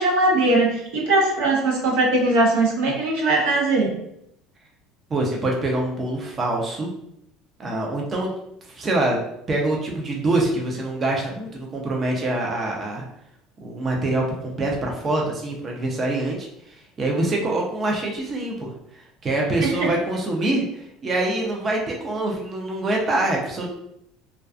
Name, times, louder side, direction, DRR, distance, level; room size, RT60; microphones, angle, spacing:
voice 1, 0.0-3.9 19.6-19.7, right 2 dB, 85° right, -1 dB, 0.7 m, -20 dB
voice 2, 5.1-6.9 7.6-8.3 8.6-9.2 9.5-13.0 13.6-18.7 19.2-23.7, right 2 dB, 30° right, 0 dB, 0.5 m, -25 dB
2.3 x 2.3 x 2.4 m, 0.77 s
supercardioid pair, 115°, 0 cm